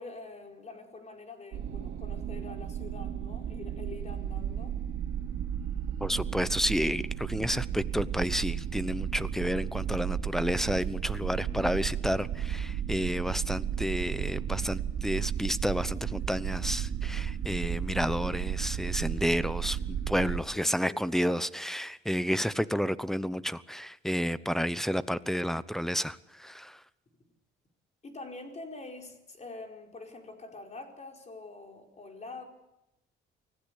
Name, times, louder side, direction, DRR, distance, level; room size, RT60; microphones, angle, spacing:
voice 1, 0.0-4.8 11.4-11.8 20.2-21.4 28.0-32.4, left 3 dB, 35° left, 3 dB, 4.8 m, -45 dB
sound 1, 1.5-20.4, right 9 dB, 85° right, 2.7 m, -34 dB
voice 2, 6.0-26.8, equal, ahead, 17 dB, 0.8 m, -31 dB
24.5 x 16.0 x 8.4 m, 0.91 s
cardioid pair, 90°, 20 cm